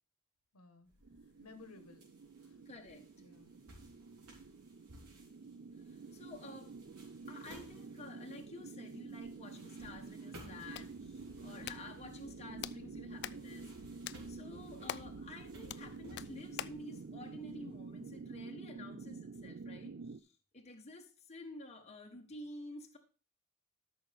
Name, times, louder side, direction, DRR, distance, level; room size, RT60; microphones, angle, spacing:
voice 1, 0.5-0.9 1.2-2.0 2.4-2.7 3.2-4.3, left 3 dB, 80° left, 8 dB, 1.4 m, -59 dB
sound 1, 0.9-18.3, equal, 90° right, 3.8 m, -60 dB
sound 2, 1.0-20.2, right 4 dB, 50° right, 0.4 m, -49 dB
voice 2, 2.7-3.1 5.8-6.7 7.3-14.0 14.3-23.0, left 2 dB, 30° left, 2 dB, 1.4 m, -51 dB
Hands, 10.4-16.9, left 11 dB, 50° left, 0.4 m, -48 dB
13.0 x 6.2 x 3.5 m, 0.36 s
head